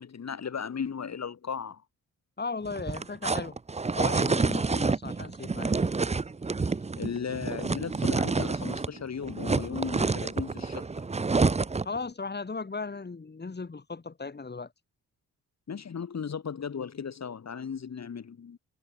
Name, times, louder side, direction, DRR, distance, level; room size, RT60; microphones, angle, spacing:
voice 1, 0.0-1.8 7.0-10.9 15.7-18.6, left 6 dB, 55° left, 4.1 m, -36 dB
voice 2, 2.4-3.6 3.9-5.8 11.8-14.7, left 4 dB, 30° left, 4.2 m, -36 dB
sound 1, 2.6-9.0 9.2-12.0, right 4 dB, 20° right, 0.8 m, -28 dB
cardioid pair, 75°, 32 cm